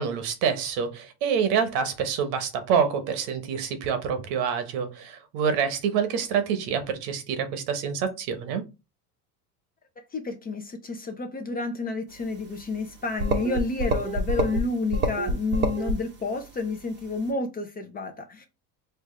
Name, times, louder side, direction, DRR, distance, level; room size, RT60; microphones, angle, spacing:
voice 1, 0.0-8.6, right 7 dB, 70° right, 1.1 m, -27 dB
voice 2, 10.1-18.5, left 3 dB, 20° left, 0.5 m, -30 dB
sound 1, 12.9-13.0 13.2-14.6 14.9-16.0, right 2 dB, 25° right, 0.7 m, -26 dB
4.4 x 2.4 x 3.2 m
supercardioid pair, 135°, 47 cm